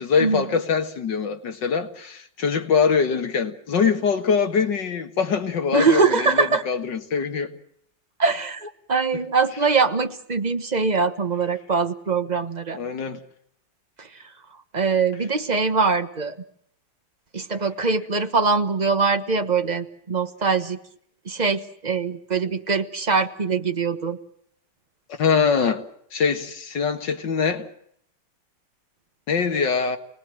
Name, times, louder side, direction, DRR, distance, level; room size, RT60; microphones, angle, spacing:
voice 1, 0.0-7.5 12.7-13.2 25.2-25.8 26.1-27.7 29.3-30.0, left 6 dB, 75° left, 2.3 m, -23 dB
voice 2, 5.7-6.6 8.2-12.8 14.0-14.1 14.7-16.3 17.3-20.8 21.2-24.2, right 4 dB, 25° right, 1.2 m, -22 dB
28.5 x 19.5 x 7.7 m
omnidirectional pair, 2.0 m